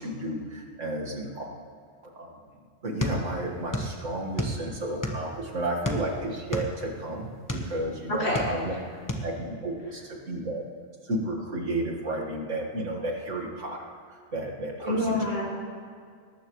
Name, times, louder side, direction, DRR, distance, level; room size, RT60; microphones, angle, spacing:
voice 1, 0.0-1.5 2.1-2.4 2.8-8.7 9.2-10.6 11.0-15.2, right 1 dB, 85° right, -1 dB, 2.2 m, -32 dB
sound 1, 3.0-5.3 5.8-7.7 8.1-8.8 9.1-9.3, equal, 15° left, 1.1 m, -30 dB
voice 2, 8.1-8.4 14.8-15.4, left 1 dB, 90° left, -4 dB, 3.3 m, -27 dB
19.5 x 14.0 x 3.2 m, 2.1 s
omnidirectional pair, 1.2 m